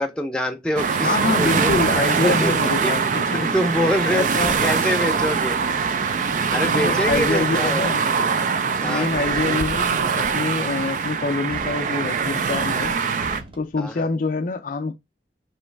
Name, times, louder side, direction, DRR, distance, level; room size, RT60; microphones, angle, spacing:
voice 1, 0.0-1.7 2.0-2.5 2.8-2.9 3.3-5.9 6.5-7.9 8.8-9.1 13.8-14.1, equal, 5° left, 0.6 m, -25 dB
sound 1, 0.8-13.4, right 5 dB, 45° right, 0.3 m, -22 dB
voice 2, 1.0-3.5 4.1-4.6 6.7-8.0 8.8-13.0 13.6-14.9, left 3 dB, 50° left, 0.4 m, -25 dB
Truck, 1.4-2.3 4.2-5.0 6.7-7.6 9.2-10.3 11.5-12.3 13.2-14.1, equal, 30° right, 0.7 m, -40 dB
3.1 x 3.0 x 4.5 m
head